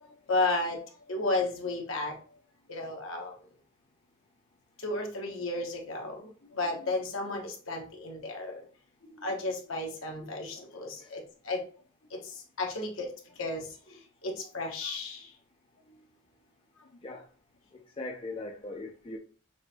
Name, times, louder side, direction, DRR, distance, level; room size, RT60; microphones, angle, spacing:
voice 1, 0.0-0.8 1.1-2.1 2.7-3.3 4.8-8.6 9.1-11.6 12.1-13.1 13.4-15.3, left 2 dB, 70° left, 1.1 m, -33 dB
voice 2, 17.7-19.2, left 2 dB, 25° left, 0.4 m, -40 dB
6.0 x 2.6 x 2.7 m
head